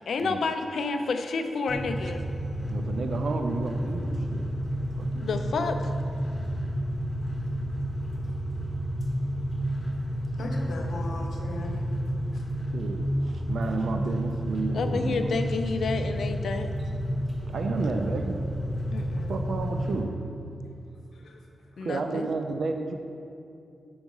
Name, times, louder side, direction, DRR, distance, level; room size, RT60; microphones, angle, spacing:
voice 1, 0.1-2.2 5.2-5.9 14.7-16.7 18.9-19.3 21.8-22.3, left 4 dB, 70° left, 7 dB, 0.4 m, -30 dB
sound 1, 1.7-20.0, equal, 25° left, 0.9 m, -30 dB
voice 2, 2.7-4.6 5.0-5.5 8.1-8.3 12.7-15.4 17.5-18.4 18.7-18.8 19.3-20.2 21.8-22.9, right 3 dB, 60° right, 5 dB, 0.4 m, -32 dB
voice 3, 10.4-11.8 12.3-12.4 21.1-21.7, left 2 dB, 85° left, 1 dB, 0.8 m, -38 dB
5.2 x 4.7 x 5.3 m, 2.6 s
wide cardioid pair, 170°, 0 cm